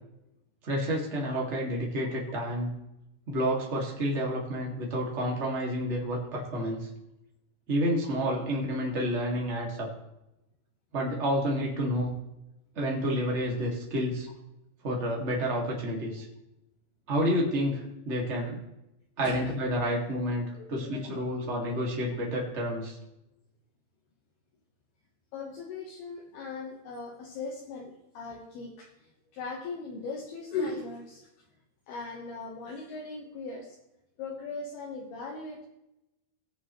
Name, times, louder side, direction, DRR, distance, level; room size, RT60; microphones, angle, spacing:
voice 1, 0.6-2.7 3.3-6.9 7.7-9.9 10.9-12.1 12.7-14.3 14.8-16.3 17.1-18.6 19.2-23.0, equal, 75° right, -2 dB, 0.6 m, -29 dB
voice 2, 19.2-19.6 20.5-21.2 25.3-31.3 31.9-33.8 34.2-35.7, left 4 dB, 70° left, -1 dB, 2.8 m, -39 dB
20.0 x 7.3 x 3.1 m, 0.90 s
omnidirectional pair, 5.3 m